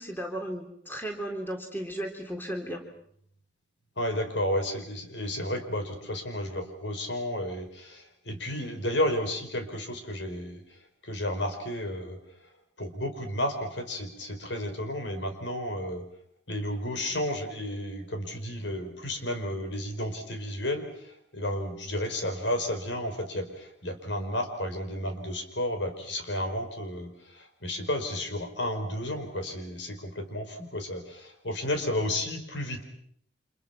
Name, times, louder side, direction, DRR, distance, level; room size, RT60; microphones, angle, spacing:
voice 1, 0.0-2.8, right 1 dB, 10° left, 3 dB, 3.6 m, -35 dB
voice 2, 4.0-10.6 11.0-12.2 12.8-16.0 16.5-32.8, left 1 dB, 80° left, 5 dB, 5.0 m, -32 dB
30.0 x 27.5 x 6.0 m, 0.66 s
head